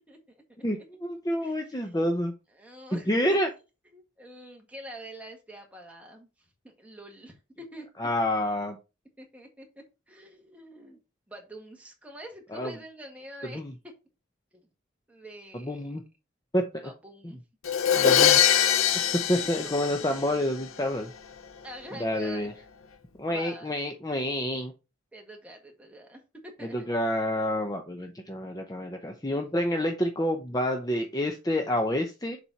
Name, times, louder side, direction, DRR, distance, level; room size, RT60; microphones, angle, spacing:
voice 1, 0.6-2.3 2.9-3.5 8.0-8.8 12.5-12.7 13.5-13.7 15.5-16.0 16.5-16.8 17.9-18.4 19.3-21.1 22.0-22.5 23.2-24.7 26.7-32.4, left 1 dB, 20° left, 5 dB, 0.7 m, -28 dB
voice 2, 1.4-2.2 2.5-3.4 3.9-7.9 9.2-11.0 11.3-13.9 15.1-16.0 16.8-17.4 19.3-19.9 21.6-22.5 23.3-23.7 25.1-26.8, right 1 dB, 5° right, 1 dB, 1.7 m, -46 dB
Crash cymbal, 17.6-20.6, left 10 dB, 90° left, 0.8 m, -23 dB
7.1 x 4.3 x 4.6 m, 0.28 s
head